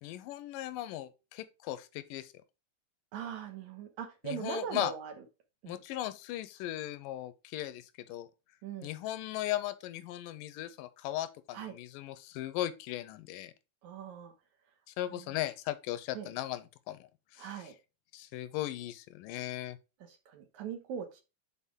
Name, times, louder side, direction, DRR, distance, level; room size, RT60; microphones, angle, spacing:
voice 1, 0.0-2.3 4.2-4.9 5.7-8.3 8.8-13.5 14.9-17.7 18.1-19.8, left 14 dB, 85° left, 2.2 m, -38 dB
voice 2, 3.1-5.1 5.6-5.8 8.6-8.9 11.5-11.7 13.8-14.3 15.1-15.2 16.1-16.3 17.4-17.7 20.3-21.2, right 8 dB, 70° right, 2.2 m, -40 dB
7.2 x 4.2 x 3.6 m
omnidirectional pair, 3.9 m